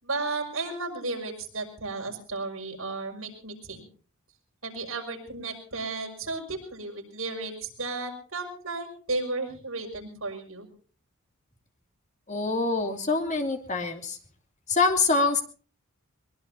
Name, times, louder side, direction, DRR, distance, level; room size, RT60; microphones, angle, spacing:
voice 1, 0.0-3.9 4.6-10.7, right 3 dB, 70° right, 1 dB, 6.1 m, -34 dB
voice 2, 12.3-14.2 14.7-15.4, left 3 dB, 35° left, 4 dB, 2.6 m, -25 dB
23.0 x 21.0 x 2.8 m, 0.39 s
head